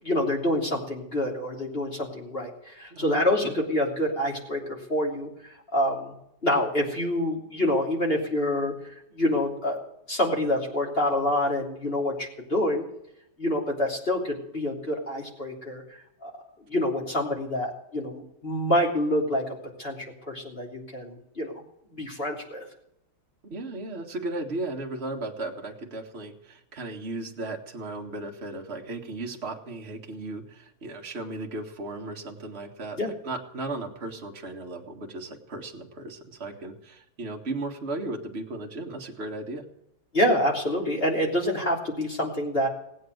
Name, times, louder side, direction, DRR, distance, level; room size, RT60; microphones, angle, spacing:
voice 1, 0.0-5.3 5.7-6.1 6.4-9.8 10.1-12.8 13.4-16.3 16.7-19.4 19.8-21.5 21.9-22.6 33.0-33.1 40.1-42.7, left 1 dB, 25° left, 0 dB, 3.2 m, -27 dB
voice 2, 2.9-3.6 23.4-39.7, right 2 dB, 30° right, 1 dB, 2.1 m, -36 dB
18.5 x 8.6 x 7.9 m, 0.81 s
omnidirectional pair, 2.2 m